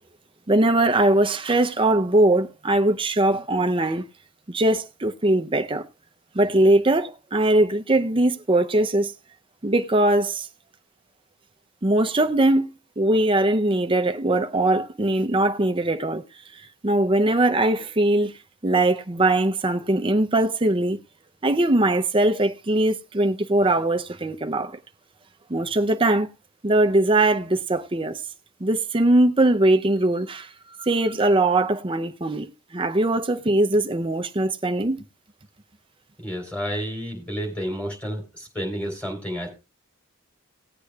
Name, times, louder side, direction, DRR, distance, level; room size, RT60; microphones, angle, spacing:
voice 1, 0.5-4.0 4.5-5.8 6.3-9.1 9.6-10.5 11.8-12.7 13.0-16.2 16.8-18.3 18.6-21.0 21.4-24.8 25.5-26.3 26.6-28.2 28.6-30.5 30.8-32.5 32.7-35.0, right 1 dB, 25° right, 0.6 m, -21 dB
voice 2, 36.2-39.5, equal, 5° left, 3.7 m, -30 dB
18.5 x 8.3 x 2.3 m
head